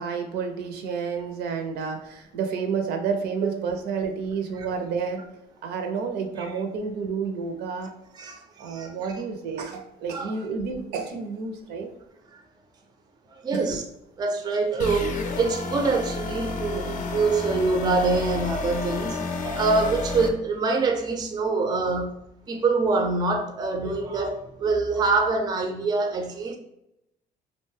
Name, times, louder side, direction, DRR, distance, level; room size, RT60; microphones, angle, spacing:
voice 1, 0.0-5.2 5.6-7.9 8.2-8.3 8.6-11.9 13.5-13.6, right 5 dB, 75° right, 4 dB, 0.5 m, -30 dB
voice 2, 8.1-9.2 10.1-10.3 12.3-12.4 13.3-13.8 14.2-22.2 22.5-26.6, right 3 dB, 25° right, 4 dB, 0.4 m, -25 dB
sound 1, 14.8-20.3, left 3 dB, 50° left, 0.5 m, -31 dB
2.5 x 2.2 x 3.1 m, 0.83 s
cardioid pair, 110°, 17 cm